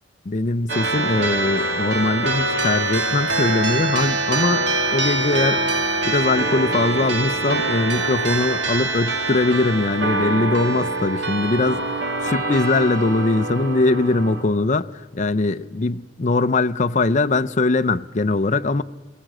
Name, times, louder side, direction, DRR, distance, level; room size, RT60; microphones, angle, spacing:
voice 1, 0.3-4.6 4.9-5.6 6.0-14.9 15.1-18.8, left 3 dB, 40° left, 0.6 m, -21 dB
sound 1, 0.7-14.4, right 2 dB, 70° right, 2.9 m, -24 dB
21.5 x 16.0 x 7.7 m
head